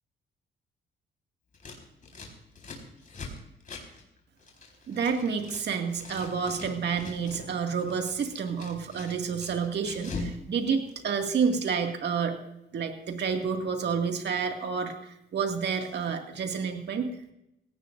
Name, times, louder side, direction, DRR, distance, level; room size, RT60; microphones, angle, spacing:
Scissors, 1.5-5.6 5.9-7.5 7.8-10.4 10.6-11.5, left 3 dB, 40° left, 4.3 m, -42 dB
voice 1, 4.9-12.4 12.7-17.2, right 6 dB, 60° right, 4 dB, 2.2 m, -29 dB
18.0 x 16.5 x 2.6 m, 0.82 s
cardioid pair, 90°, 20 cm